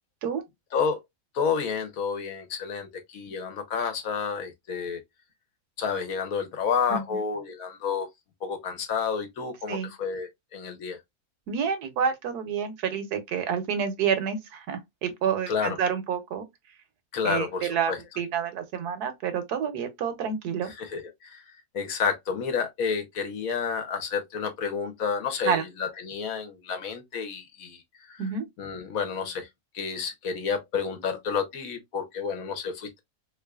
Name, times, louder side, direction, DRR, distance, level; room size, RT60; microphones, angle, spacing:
voice 1, 1.3-5.0 5.8-8.1 8.4-11.0 15.5-15.8 17.1-18.0 20.6-21.4 21.7-27.8 28.1-28.2 28.6-29.5 29.7-33.0, left 6 dB, 65° left, 1.2 m, -30 dB
voice 2, 11.5-16.5 17.2-20.7 25.4-25.6 28.2-28.5, right 7 dB, 80° right, 1.3 m, -28 dB
3.6 x 3.1 x 2.2 m
omnidirectional pair, 1.7 m